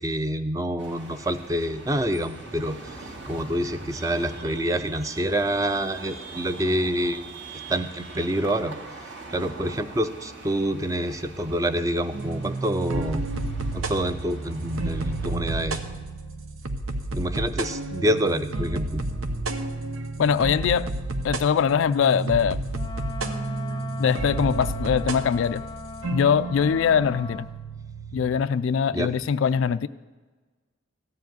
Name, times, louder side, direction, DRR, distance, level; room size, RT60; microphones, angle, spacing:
voice 1, 0.0-7.3 7.7-8.8 9.3-13.3 13.7-15.8 17.1-19.0 28.9-29.1, equal, 15° right, 10 dB, 0.5 m, -27 dB
sound 1, 0.8-15.4, right 3 dB, 60° right, 1.8 m, -42 dB
sound 2, 12.1-28.4, right 2 dB, 90° right, 0.9 m, -31 dB
voice 2, 20.2-20.9 21.2-22.6 24.0-25.6 26.1-27.5 28.1-29.9, left 7 dB, 70° left, 14 dB, 0.3 m, -22 dB
Wind instrument woodwind instrument, 22.7-27.5, left 4 dB, 20° left, 0.6 m, -39 dB
14.0 x 4.9 x 9.2 m, 1.3 s
head